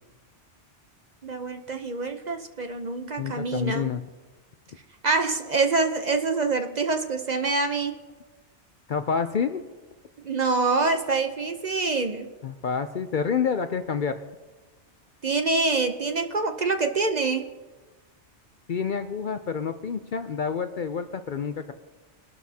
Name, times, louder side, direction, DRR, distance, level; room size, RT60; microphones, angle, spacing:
voice 1, 1.2-3.9 5.0-8.0 10.2-12.3 15.2-17.5, right 3 dB, 45° right, 6 dB, 0.7 m, -26 dB
voice 2, 3.2-4.0 8.9-9.6 12.4-14.2 18.7-21.7, left 6 dB, 55° left, 9 dB, 0.6 m, -28 dB
22.0 x 12.5 x 2.8 m, 1.2 s
omnidirectional pair, 1.2 m